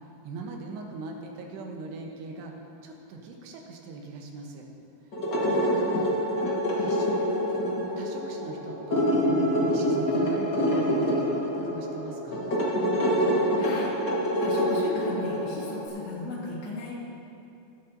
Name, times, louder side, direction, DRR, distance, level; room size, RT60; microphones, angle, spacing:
voice 1, 0.2-2.5 2.8-4.7 5.4-6.1 6.8-7.2 8.0-9.4 9.7-12.6, right 3 dB, 85° right, 1 dB, 3.1 m, -41 dB
sound 1, 5.1-15.9, equal, 50° left, 1.2 m, -26 dB
voice 2, 13.6-16.9, left 2 dB, 85° left, -6 dB, 4.4 m, -37 dB
16.5 x 11.5 x 2.8 m, 2.8 s
omnidirectional pair, 4.8 m